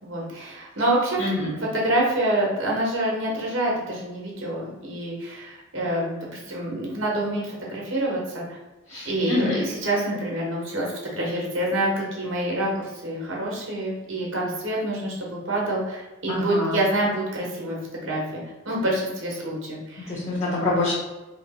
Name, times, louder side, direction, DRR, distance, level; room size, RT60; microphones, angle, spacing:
voice 1, 0.0-1.2 1.7-8.4 9.0-12.7 13.0-20.2, right 1 dB, 70° right, -3 dB, 1.2 m, -27 dB
voice 2, 1.2-1.6 8.9-9.6 16.3-16.8 20.1-20.9, left 2 dB, 35° left, -7 dB, 0.9 m, -26 dB
3.2 x 3.1 x 4.2 m, 1.1 s
head